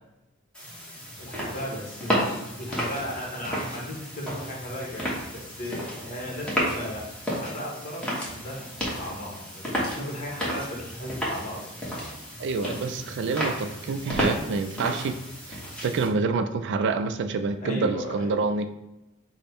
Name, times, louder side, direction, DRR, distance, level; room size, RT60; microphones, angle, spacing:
sound 1, 0.5-16.1, equal, 5° left, 1.1 m, -32 dB
voice 1, 1.2-7.1 7.3-11.7 12.6-13.0 17.6-18.4, equal, 40° left, -2 dB, 1.2 m, -36 dB
voice 2, 12.4-15.2 15.5-18.7, right 4 dB, 60° right, 8 dB, 0.4 m, -27 dB
5.1 x 2.2 x 4.3 m, 0.95 s
head